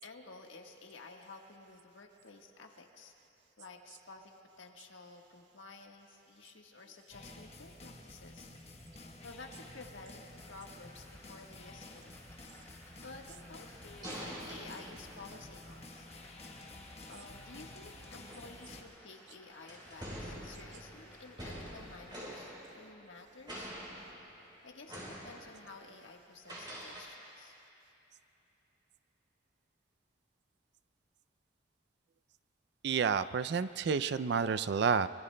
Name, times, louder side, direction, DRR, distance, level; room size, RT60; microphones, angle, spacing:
voice 1, 0.0-3.1 3.6-8.5 9.2-10.2 10.5-12.2 12.5-16.4 17.1-23.7 24.6-27.5, left 3 dB, 80° left, 2 dB, 1.4 m, -52 dB
sound 1, 7.1-18.8, left 2 dB, 35° left, 1.0 m, -51 dB
sound 2, 10.3-22.4, left 1 dB, 10° left, 3.6 m, -59 dB
sound 3, 13.2-15.8 17.2-17.4 18.2-19.1 19.7-23.2 23.5-24.5 24.9-25.8 26.5-27.0, equal, 25° right, 3.6 m, -46 dB
voice 2, 32.8-35.1, right 6 dB, 60° right, 13 dB, 0.4 m, -30 dB
24.0 x 24.0 x 2.2 m, 2.8 s
head